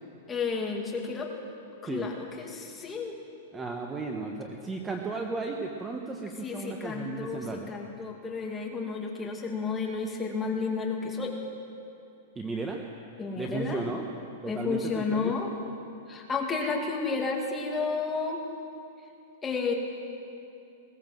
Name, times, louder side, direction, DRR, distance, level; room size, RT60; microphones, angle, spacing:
voice 1, 0.3-1.3 1.8-3.1 6.4-11.3 13.2-13.8 14.5-15.5 16.1-18.4 19.4-19.7, left 4 dB, 10° left, -1 dB, 2.2 m, -31 dB
voice 2, 3.5-7.7 12.4-12.8 13.3-14.1 14.4-15.4, right 3 dB, 10° right, 2 dB, 1.0 m, -34 dB
21.0 x 17.5 x 7.7 m, 2.6 s
supercardioid pair, 170°, 0 cm